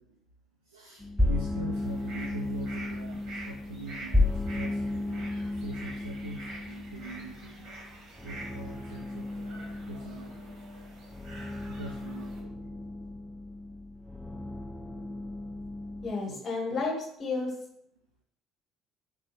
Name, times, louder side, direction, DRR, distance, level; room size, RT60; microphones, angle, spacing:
voice 1, 0.7-7.7 8.2-9.6 9.9-10.9 11.7-12.5 16.3-16.6, right 1 dB, 85° right, -2 dB, 0.3 m, -43 dB
sound 1, 1.0-16.1, left 2 dB, 5° left, 0.3 m, -34 dB
sound 2, 1.7-12.4, right 2 dB, 60° right, 1.0 m, -47 dB
voice 2, 16.0-17.5, left 3 dB, 40° left, 1 dB, 0.9 m, -32 dB
3.1 x 2.6 x 2.9 m, 0.70 s
figure-of-eight pair, 55°, 0 cm